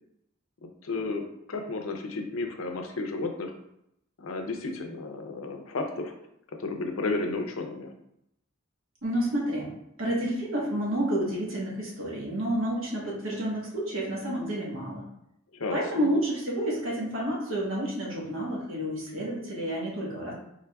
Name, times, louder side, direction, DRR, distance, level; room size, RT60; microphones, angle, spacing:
voice 1, 0.6-3.5 4.2-6.1 6.6-7.9 15.5-16.1, left 3 dB, 85° left, 4 dB, 0.6 m, -33 dB
voice 2, 9.0-9.7 10.0-15.0 15.7-20.3, right 1 dB, 75° right, -4 dB, 1.3 m, -30 dB
4.8 x 3.4 x 2.3 m, 0.79 s
head